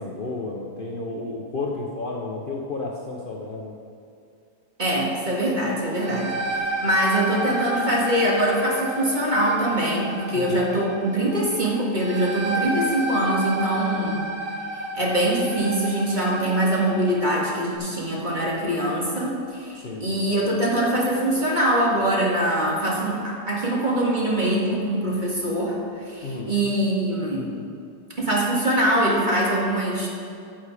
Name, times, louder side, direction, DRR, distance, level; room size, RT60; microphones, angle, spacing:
voice 1, 0.0-3.7 10.3-10.6 19.8-20.2 26.2-26.5, left 3 dB, 65° left, -2 dB, 0.5 m, -32 dB
voice 2, 4.8-6.4 6.8-14.2 14.9-25.8 26.1-27.5 28.2-30.1, right 1 dB, 20° right, -4 dB, 1.9 m, -23 dB
sound 1, 5.8-17.3, right 1 dB, 85° right, 2.7 m, -31 dB
15.0 x 7.1 x 4.9 m, 2.5 s
omnidirectional pair, 2.4 m